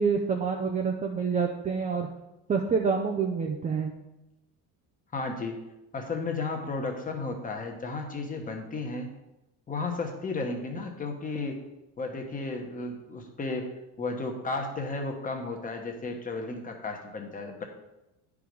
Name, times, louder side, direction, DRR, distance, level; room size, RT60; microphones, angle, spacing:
voice 1, 0.0-2.1 2.5-3.9, right 5 dB, 20° right, 2 dB, 0.4 m, -27 dB
voice 2, 5.1-5.6 5.9-9.1 9.7-11.6 12.0-13.7 14.0-17.6, left 3 dB, 20° left, 3 dB, 1.0 m, -33 dB
9.8 x 4.8 x 5.2 m, 0.94 s
cardioid pair, 165°, 41 cm